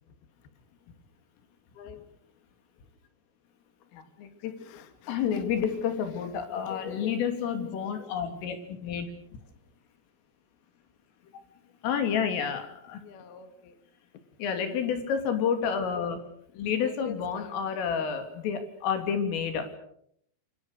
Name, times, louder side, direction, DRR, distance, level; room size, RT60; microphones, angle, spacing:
voice 1, 1.7-2.1 4.4-5.4 5.8-6.3 6.5-8.1 13.0-13.8 16.8-17.6, left 7 dB, 55° left, 9 dB, 3.4 m, -46 dB
voice 2, 3.9-4.6 5.1-9.1 11.8-13.0 14.4-16.2 16.6-19.7, left 7 dB, 75° left, 7 dB, 5.4 m, -30 dB
27.5 x 24.5 x 6.7 m, 0.71 s
omnidirectional pair, 5.9 m